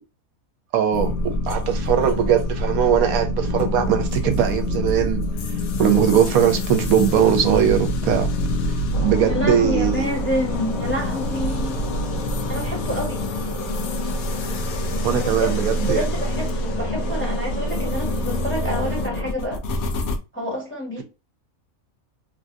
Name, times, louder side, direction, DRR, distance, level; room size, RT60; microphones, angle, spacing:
voice 1, 0.7-5.2 5.8-8.3 9.0-10.0 14.4-14.6 15.0-16.1, right 9 dB, 80° right, 1.0 m, -20 dB
sound 1, 0.9-20.2, left 1 dB, 75° left, 1.0 m, -26 dB
sound 2, 8.9-19.3, left 2 dB, 60° left, 1.5 m, -31 dB
voice 2, 9.2-11.8 12.5-13.2 15.1-15.5 15.8-19.6 20.3-21.0, equal, 10° left, 1.2 m, -28 dB
3.2 x 2.5 x 2.5 m
omnidirectional pair, 1.5 m